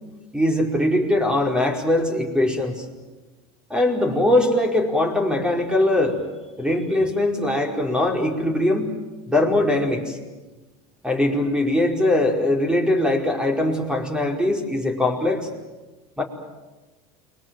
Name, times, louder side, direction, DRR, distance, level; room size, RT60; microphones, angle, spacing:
voice 1, 0.3-2.8 3.7-6.2 6.6-9.0 9.3-10.2 11.0-15.5 16.2-16.3, left 1 dB, 5° right, 2 dB, 4.9 m, -21 dB
29.0 x 23.0 x 7.8 m, 1.2 s
supercardioid pair, 115°, 19 cm